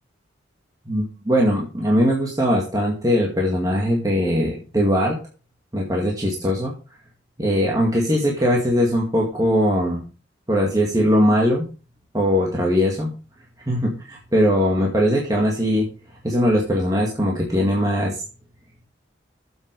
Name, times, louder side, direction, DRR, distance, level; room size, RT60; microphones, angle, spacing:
voice 1, 0.9-5.2 5.7-6.7 7.4-10.0 10.5-11.6 12.1-13.1 13.6-15.9 16.2-18.2, equal, 20° right, -2 dB, 2.0 m, -20 dB
7.8 x 7.2 x 6.8 m, 0.35 s
head